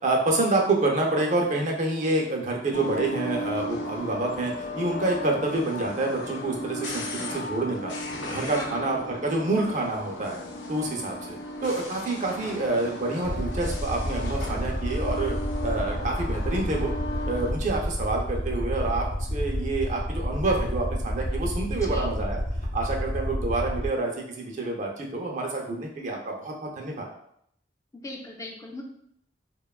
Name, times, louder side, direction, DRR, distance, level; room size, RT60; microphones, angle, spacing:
voice 1, 0.0-7.9 8.2-10.4 10.7-15.3 15.6-16.9 17.3-22.4 22.7-27.1, right 2 dB, 45° right, 0 dB, 0.5 m, -28 dB
sound 1, 2.7-17.5, left 1 dB, 80° left, 0.4 m, -35 dB
voice 2, 8.4-8.8 21.8-22.1 27.9-28.8, left 2 dB, 20° left, 1 dB, 0.3 m, -39 dB
Aircraft, 13.2-23.9, equal, 40° left, 0.9 m, -30 dB
2.8 x 2.2 x 2.3 m, 0.70 s
head